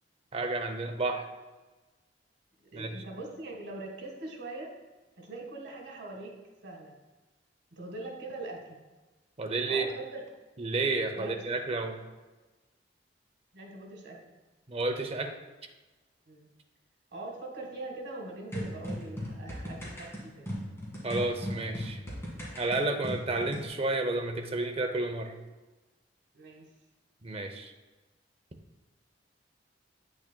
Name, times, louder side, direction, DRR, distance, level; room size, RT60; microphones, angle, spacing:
voice 1, 0.3-1.3 2.7-3.0 9.4-9.9 10.6-12.0 14.7-15.3 21.0-22.0 22.5-25.3 27.2-27.7, right 2 dB, 35° right, 5 dB, 0.7 m, -31 dB
voice 2, 2.7-4.7 5.2-6.3 6.6-7.0 7.7-8.8 9.7-10.2 11.2-11.4 13.5-14.3 16.3-16.5 17.1-20.4 26.3-26.6, right 2 dB, 65° right, 0 dB, 1.7 m, -42 dB
sound 1, 18.5-23.7, equal, 15° left, 1.9 m, -38 dB
9.1 x 6.2 x 2.2 m, 1.2 s
head